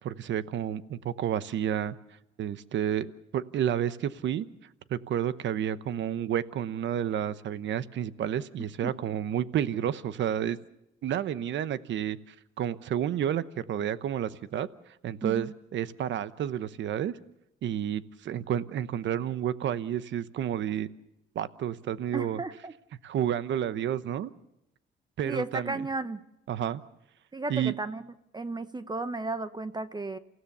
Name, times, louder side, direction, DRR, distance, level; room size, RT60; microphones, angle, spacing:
voice 1, 0.0-2.0 2.4-4.5 4.9-10.6 11.0-14.7 15.0-17.1 17.6-20.9 21.3-22.4 23.0-24.3 25.2-25.8 26.5-26.8 27.5-27.7, right 10 dB, 70° right, 14 dB, 1.0 m, -30 dB
voice 2, 15.2-15.5 22.1-22.7 25.3-26.2 27.3-28.0 28.3-30.2, right 3 dB, 20° right, 12 dB, 0.9 m, -34 dB
28.0 x 16.0 x 6.8 m, 0.84 s
cardioid pair, 90°, 20 cm